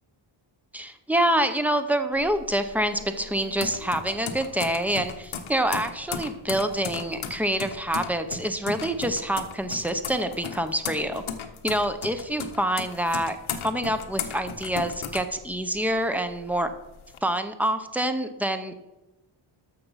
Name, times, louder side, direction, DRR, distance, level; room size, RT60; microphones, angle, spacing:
voice 1, 0.7-11.2 11.6-13.4 13.6-16.7 17.2-18.7, right 1 dB, 5° right, 8 dB, 0.7 m, -26 dB
sound 1, 2.1-16.0 16.3-17.2, left 7 dB, 75° left, 1.1 m, -36 dB
12.0 x 6.6 x 5.6 m, 1.0 s
wide cardioid pair, 135°, 49 cm